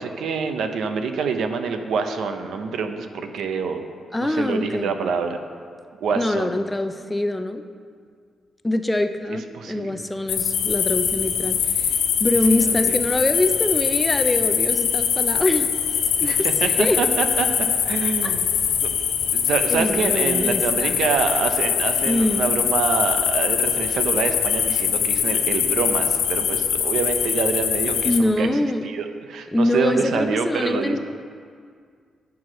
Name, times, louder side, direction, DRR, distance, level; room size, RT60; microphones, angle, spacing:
voice 1, 0.0-3.8 4.2-5.4 6.0-6.6 9.3-10.0 12.5-13.0 16.2-17.5 17.9-18.4 18.8-18.9 19.3-28.5 28.8-31.0, right 5 dB, 80° right, 7 dB, 0.7 m, -26 dB
voice 2, 4.1-4.9 6.1-7.6 8.6-15.7 16.2-17.0 18.2-18.3 19.7-21.0 22.1-22.5 28.0-28.8 29.5-31.0, left 1 dB, 10° left, 8 dB, 0.4 m, -24 dB
sound 1, 10.3-28.2, left 8 dB, 90° left, 0.7 m, -22 dB
9.5 x 4.7 x 6.2 m, 2.1 s
cardioid pair, 120°, 0 cm